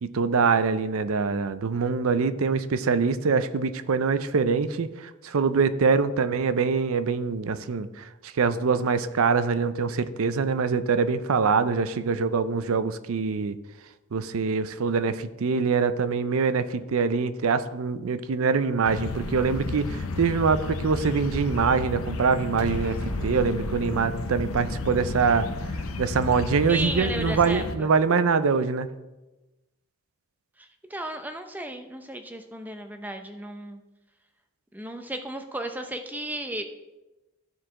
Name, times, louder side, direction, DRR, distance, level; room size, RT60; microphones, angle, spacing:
voice 1, 0.0-13.6 14.1-25.5 26.0-28.9, right 5 dB, 75° right, 13 dB, 0.5 m, -24 dB
sound 1, 18.8-27.8, left 3 dB, 75° left, 0.7 m, -32 dB
Explosion, 22.6-27.7, right 1 dB, 50° right, 1.2 m, -39 dB
voice 2, 26.7-27.9 30.6-33.8 34.7-36.6, right 1 dB, 10° right, 6 dB, 0.5 m, -34 dB
13.0 x 4.7 x 3.7 m, 1.1 s
head